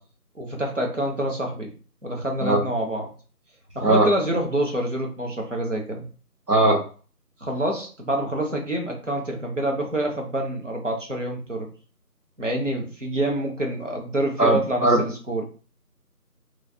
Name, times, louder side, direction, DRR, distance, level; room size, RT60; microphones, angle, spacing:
voice 1, 0.4-1.7 2.0-3.1 3.7-6.0 7.4-11.7 12.4-15.4, right 1 dB, 50° right, 1 dB, 0.7 m, -27 dB
voice 2, 6.5-6.8 14.4-15.0, right 1 dB, 75° right, 0 dB, 1.3 m, -19 dB
3.1 x 2.0 x 2.6 m, 0.38 s
figure-of-eight pair, 175°, 47 cm